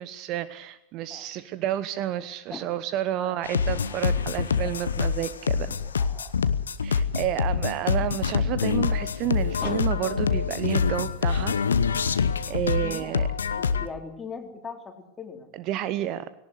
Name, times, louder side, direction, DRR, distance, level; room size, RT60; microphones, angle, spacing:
voice 1, 0.0-5.7 6.8-11.6 12.0-13.3 15.5-16.3, right 12 dB, 40° right, 15 dB, 0.9 m, -30 dB
sound 1, 3.4-13.9, left 6 dB, 70° left, 1.0 m, -26 dB
voice 2, 4.9-6.3 9.6-9.8 12.8-13.2 13.6-15.5, left 5 dB, 15° left, 4 dB, 3.5 m, -41 dB
19.0 x 18.0 x 8.1 m, 0.74 s
figure-of-eight pair, 90°, 0 cm